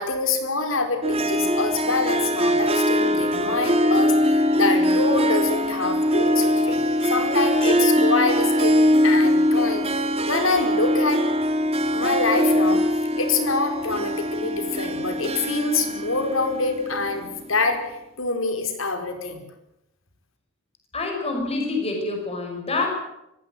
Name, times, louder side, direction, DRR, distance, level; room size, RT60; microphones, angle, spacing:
voice 1, 0.0-6.8 7.1-11.3 11.9-12.8 13.2-17.8 18.2-19.4, left 3 dB, 90° left, 6 dB, 4.8 m, -25 dB
Harp, 1.0-17.5, equal, 30° right, 2.7 m, -22 dB
voice 2, 20.9-22.9, left 3 dB, 30° left, 2 dB, 5.7 m, -26 dB
24.5 x 16.0 x 9.2 m, 0.86 s
head